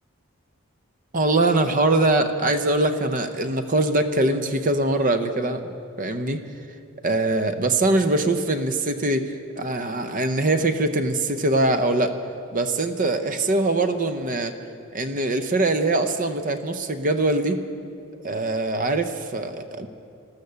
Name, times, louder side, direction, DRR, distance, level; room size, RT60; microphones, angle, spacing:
voice 1, 1.1-5.6 6.0-6.4 7.0-12.2 12.5-14.5 14.9-17.6 18.2-19.9, right 2 dB, 35° right, 9 dB, 0.7 m, -22 dB
13.0 x 13.0 x 6.9 m, 2.5 s
head